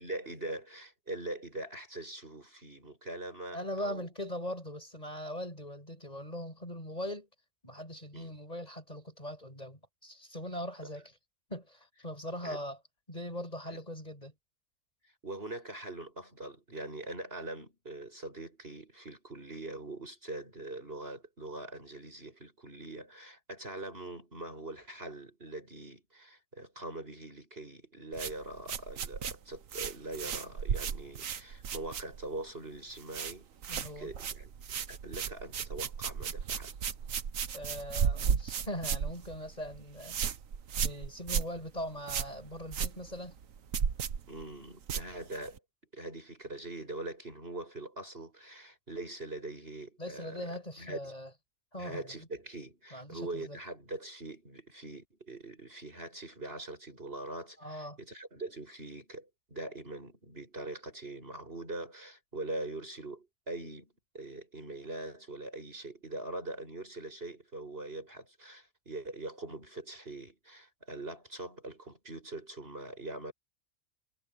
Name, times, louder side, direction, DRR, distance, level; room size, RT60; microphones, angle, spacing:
voice 1, 0.0-4.1 8.1-8.4 12.4-12.6 13.7-13.8 15.0-33.5 34.0-34.5 34.9-36.7 44.3-45.6 45.9-51.1 51.8-73.3, right 2 dB, 40° right, 7.8 m, -42 dB
voice 2, 3.5-7.3 7.6-11.1 11.5-12.8 13.1-14.3 33.7-34.1 37.5-40.2 40.8-43.3 50.0-51.3 51.7-52.3 52.9-53.6 57.6-58.0, equal, 25° left, 7.7 m, -40 dB
sound 1, 28.1-32.5 32.7-33.4 33.6-45.6, right 7 dB, 60° right, 1.4 m, -35 dB
omnidirectional pair, 1.6 m